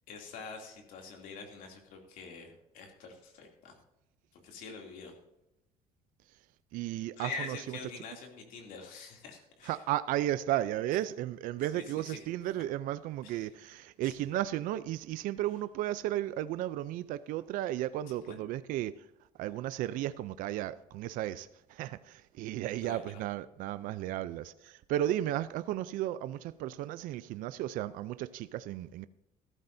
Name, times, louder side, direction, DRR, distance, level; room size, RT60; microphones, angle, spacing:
voice 1, 0.1-3.8 4.4-5.1 7.2-9.8 11.7-12.2 13.2-13.5 14.0-14.3 18.1-18.4 22.8-23.2, left 4 dB, 70° left, 2.8 m, -45 dB
voice 2, 6.7-7.3 9.7-19.1 19.4-29.1, right 13 dB, 70° right, 0.5 m, -34 dB
14.5 x 13.0 x 2.7 m
cardioid pair, 135°, 14 cm